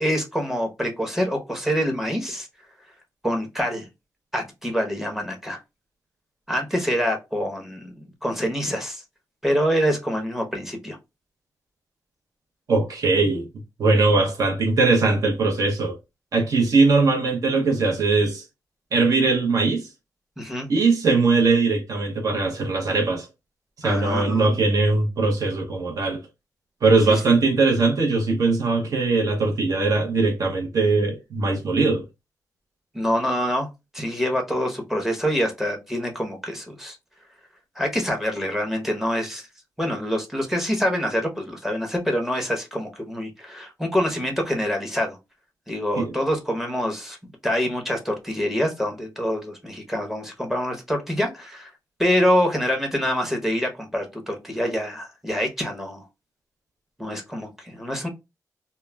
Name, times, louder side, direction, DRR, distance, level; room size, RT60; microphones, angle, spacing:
voice 1, 0.0-2.5 3.2-3.9 4.3-5.6 6.5-9.0 9.4-11.0 20.4-20.7 23.8-24.7 27.1-27.4 32.9-33.7 33.9-37.0 37.8-39.4 39.8-45.2 45.7-47.2 47.4-51.7 52.0-56.0 57.0-58.1, equal, 5° right, 0.7 m, -26 dB
voice 2, 12.7-13.5 13.8-15.9 16.3-18.4 18.9-19.9 20.7-23.3 23.8-26.2 26.8-32.0 46.0-46.1, right 3 dB, 60° right, 0.7 m, -20 dB
2.2 x 2.1 x 3.2 m
wide cardioid pair, 110°, 7 cm